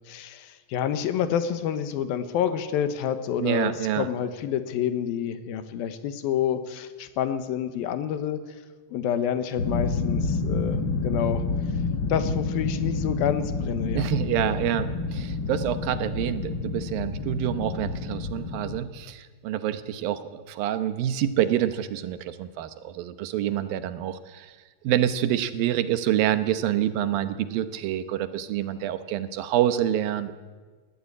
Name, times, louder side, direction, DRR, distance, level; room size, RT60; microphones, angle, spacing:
voice 1, 0.1-8.4 8.9-11.4 12.1-14.1, left 9 dB, 85° left, 10 dB, 3.0 m, -28 dB
voice 2, 3.4-4.1 13.9-24.5 24.8-30.3, right 11 dB, 80° right, 11 dB, 2.7 m, -27 dB
sound 1, 9.6-18.8, left 3 dB, 55° left, 1.3 m, -29 dB
20.0 x 14.0 x 9.7 m, 1.4 s
omnidirectional pair, 4.1 m